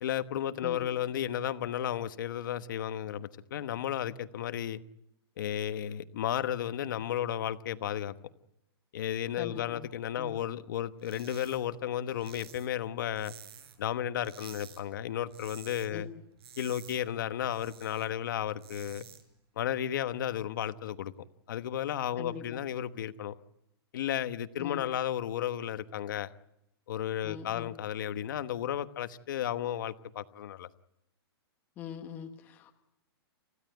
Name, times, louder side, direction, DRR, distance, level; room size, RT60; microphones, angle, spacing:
voice 1, 0.0-4.8 5.4-8.1 8.9-13.3 13.8-16.1 16.6-19.0 19.6-21.1 21.5-23.3 23.9-26.3 26.9-30.7, left 10 dB, 50° left, 11 dB, 1.2 m, -33 dB
voice 2, 9.4-9.9 10.2-10.4 15.9-16.0 22.2-22.6 24.6-24.8 27.2-27.7 31.8-32.7, left 9 dB, 15° left, 2 dB, 1.2 m, -42 dB
sound 1, 11.0-11.6 11.9-13.9 14.2-14.8 15.1-15.9 16.2-18.0 18.4-19.2, right 8 dB, 70° right, 6.3 m, -51 dB
29.5 x 16.0 x 9.2 m, 0.86 s
hypercardioid pair, 175°, 13 cm